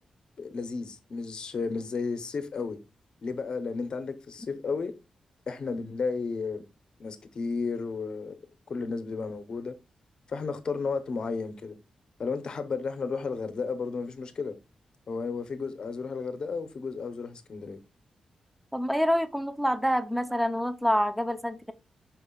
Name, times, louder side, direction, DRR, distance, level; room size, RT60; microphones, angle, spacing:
voice 1, 0.4-2.8 3.2-4.9 5.5-6.6 7.0-8.4 8.7-9.8 10.3-11.8 12.2-14.5 15.1-17.8, left 4 dB, 45° left, 0.8 m, -33 dB
voice 2, 18.7-21.7, equal, ahead, 0.6 m, -27 dB
11.0 x 4.6 x 2.3 m
wide cardioid pair, 160°, 2 cm